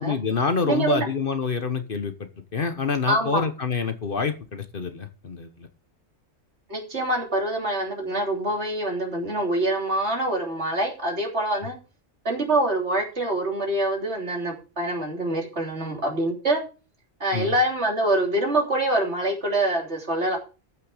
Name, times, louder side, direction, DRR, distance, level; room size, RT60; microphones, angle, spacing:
voice 1, 0.0-2.1 2.5-5.7 17.3-17.5, left 5 dB, 45° left, 1.2 m, -27 dB
voice 2, 0.7-1.1 3.1-3.4 6.7-11.8 12.3-16.6 17.2-20.4, right 1 dB, 60° right, 3.6 m, -25 dB
13.5 x 6.7 x 5.0 m
omnidirectional pair, 1.3 m